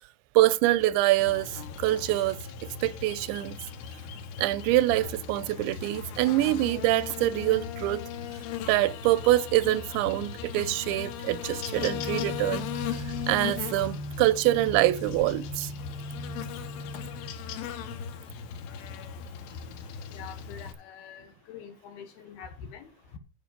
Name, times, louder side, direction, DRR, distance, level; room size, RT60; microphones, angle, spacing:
voice 1, 0.3-2.4 2.8-3.6 4.4-8.0 8.7-15.7, right 16 dB, 80° right, 2.8 m, -25 dB
Buzz, 1.2-20.7, left 7 dB, 90° left, 3.7 m, -38 dB
sound 1, 11.7-17.3, equal, 40° left, 1.3 m, -40 dB
voice 2, 20.1-23.2, left 7 dB, 70° left, 2.5 m, -45 dB
12.0 x 5.0 x 6.6 m
omnidirectional pair, 5.5 m